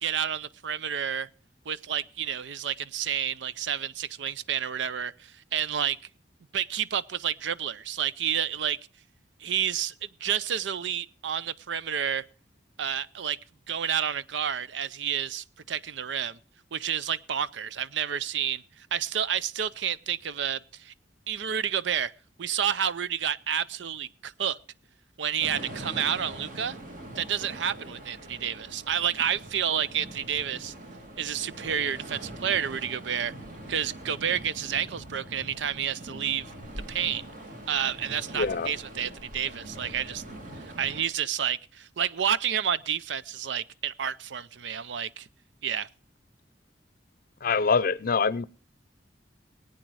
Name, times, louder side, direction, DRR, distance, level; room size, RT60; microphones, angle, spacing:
voice 1, 0.0-1.3 1.7-6.0 6.5-8.8 9.4-9.9 10.2-12.2 12.8-13.4 13.7-16.4 16.7-20.9 21.3-22.1 22.4-24.6 25.2-26.8 27.2-30.7 31.2-33.3 33.7-36.5 36.9-37.2 37.7-40.2 40.6-45.3 45.6-45.9, right 8 dB, 80° right, 0.6 m, -30 dB
sound 1, 25.4-41.1, right 1 dB, 50° right, 2.4 m, -43 dB
voice 2, 38.3-38.7 47.4-48.5, left 5 dB, 55° left, 0.6 m, -24 dB
20.5 x 9.0 x 4.7 m
head